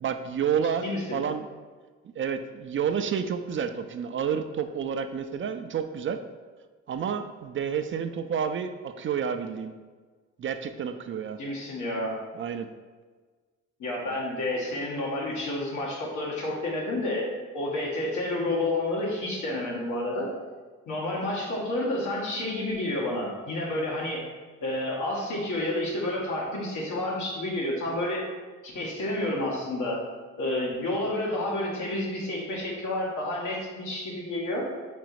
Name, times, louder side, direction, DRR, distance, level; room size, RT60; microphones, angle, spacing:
voice 1, 0.0-1.5 2.2-6.2 6.9-9.7 10.4-11.4 12.3-12.7, right 7 dB, 40° right, 8 dB, 0.4 m, -30 dB
voice 2, 0.8-1.2 11.4-12.1 13.8-17.3 17.5-20.3 20.9-24.3 24.6-28.2 28.6-30.0 30.4-34.7, left 1 dB, 80° left, -3 dB, 1.8 m, -30 dB
5.1 x 4.1 x 4.7 m, 1.4 s
cardioid pair, 90°, 30 cm